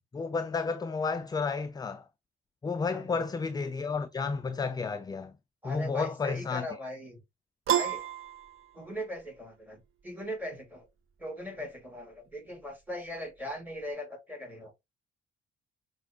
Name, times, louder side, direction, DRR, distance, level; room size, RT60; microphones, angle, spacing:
voice 1, 0.1-2.0 2.6-5.3 5.6-6.6, left 4 dB, 15° left, 0.3 m, -31 dB
voice 2, 2.9-3.2 5.6-7.2 7.7-8.0 8.7-10.9 11.2-14.7, equal, 5° right, 2.0 m, -39 dB
Piano, 7.7-9.2, right 10 dB, 45° right, 0.7 m, -30 dB
5.8 x 2.4 x 2.8 m
hypercardioid pair, 45°, 29 cm